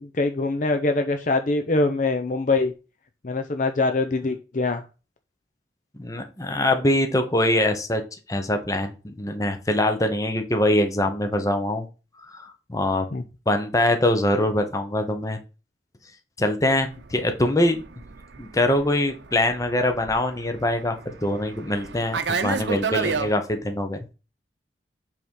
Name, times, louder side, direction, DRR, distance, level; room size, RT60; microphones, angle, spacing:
voice 1, 0.0-2.7 3.2-4.8 13.1-13.2, left 3 dB, 45° left, 7 dB, 0.6 m, -23 dB
voice 2, 5.9-8.0 8.3-11.9 12.3-13.1 13.5-15.4 16.4-17.8 18.4-24.0, left 1 dB, 20° left, 6 dB, 0.9 m, -23 dB
Fixed-wing aircraft airplane, 16.8-23.3, right 5 dB, 80° right, 0.7 m, -31 dB
7.9 x 3.6 x 4.7 m, 0.32 s
head